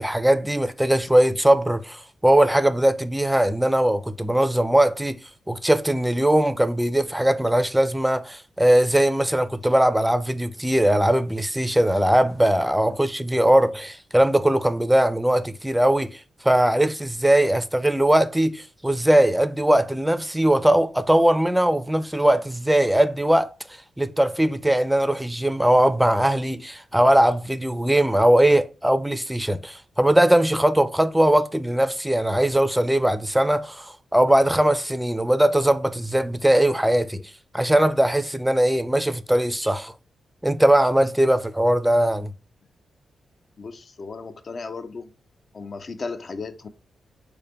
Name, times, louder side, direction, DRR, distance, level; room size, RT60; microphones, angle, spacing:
voice 1, 0.0-5.2 5.5-23.5 24.0-37.2 37.5-39.9 40.4-42.3, right 1 dB, 5° right, 0.4 m, -20 dB
voice 2, 43.6-45.1 45.5-46.7, left 4 dB, 55° left, 0.4 m, -35 dB
3.3 x 2.1 x 4.1 m
supercardioid pair, 45°, 0 cm